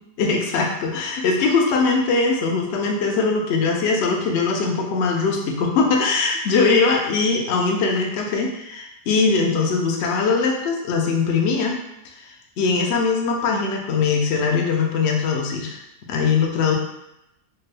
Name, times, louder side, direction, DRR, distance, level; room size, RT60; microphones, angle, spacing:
voice 1, 0.2-11.8 12.6-15.8 16.1-16.8, left 4 dB, 80° left, 0 dB, 0.6 m, -21 dB
3.4 x 2.1 x 3.2 m, 0.84 s
omnidirectional pair, 1.8 m